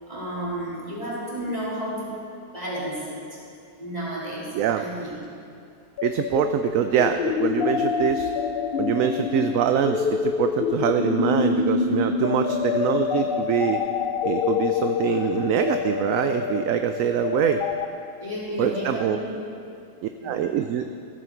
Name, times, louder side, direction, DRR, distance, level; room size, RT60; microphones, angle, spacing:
voice 1, 0.1-2.2 2.5-3.4 3.8-4.5 4.8-5.2 18.2-19.3 20.2-20.5, equal, 25° right, -7 dB, 3.7 m, -32 dB
voice 2, 4.5-4.8 6.0-8.3 8.8-13.8 14.2-17.6 18.6-19.2 20.0-20.9, right 9 dB, 70° right, 8 dB, 0.9 m, -24 dB
sound 1, 6.0-17.9, left 6 dB, 70° left, 0.5 m, -26 dB
14.5 x 13.5 x 4.6 m, 2.5 s
omnidirectional pair, 1.6 m